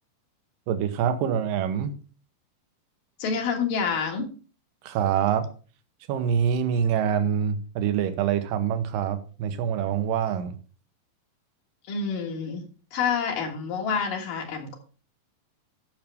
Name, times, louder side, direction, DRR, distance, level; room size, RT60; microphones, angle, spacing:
voice 1, 0.7-1.9 4.8-5.5 6.1-10.6, right 8 dB, 80° right, 9 dB, 2.6 m, -25 dB
voice 2, 3.2-4.3 11.9-14.8, left 6 dB, 75° left, 1 dB, 3.4 m, -28 dB
12.0 x 6.6 x 3.5 m, 0.37 s
omnidirectional pair, 4.0 m